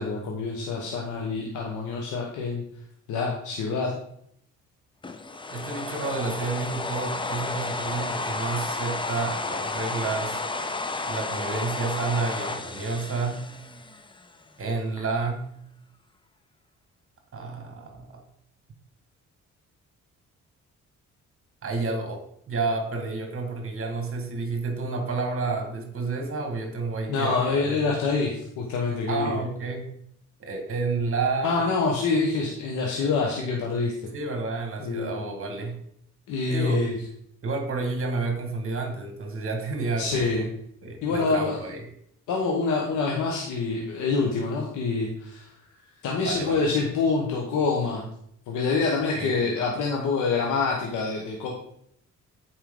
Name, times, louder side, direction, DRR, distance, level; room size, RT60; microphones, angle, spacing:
voice 1, 0.0-2.6 3.1-3.9 27.1-29.3 31.4-33.9 34.8-35.1 36.3-36.9 40.0-40.5 41.0-41.6 42.3-45.5 46.0-48.0 48.5-51.5, left 4 dB, 90° left, -1 dB, 1.2 m, -26 dB
sound 1, 5.0-14.2, left 3 dB, 15° left, 0.6 m, -32 dB
voice 2, 5.5-10.4 11.0-13.5 14.6-15.5 17.3-18.2 21.6-27.9 29.1-29.9 30.4-31.6 34.1-35.8 36.5-36.8 37.4-40.5 40.8-41.8 46.2-46.7 49.1-49.5, right 3 dB, 45° right, 4 dB, 1.8 m, -30 dB
9.0 x 4.6 x 3.8 m, 0.70 s
cardioid pair, 90°, 30 cm